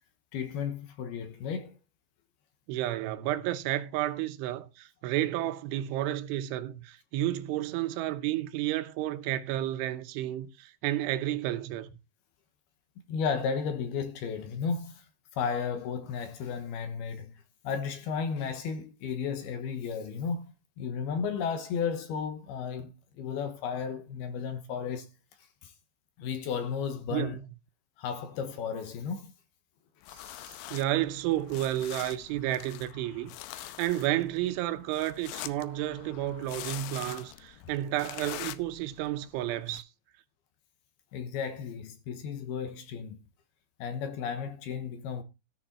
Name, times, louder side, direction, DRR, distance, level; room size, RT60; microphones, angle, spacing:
voice 1, 0.3-1.8 13.1-15.1 15.3-17.3 17.6-25.1 25.6-25.7 26.2-27.4 28.0-29.3 41.1-43.2 43.8-45.2, left 6 dB, 70° left, 2.8 m, -34 dB
voice 2, 2.7-12.0 27.1-27.3 30.1-39.9, right 14 dB, 85° right, 3.4 m, -31 dB
sound 1, 30.0-39.8, left 15 dB, 90° left, 3.2 m, -44 dB
14.0 x 7.0 x 4.3 m
omnidirectional pair, 5.4 m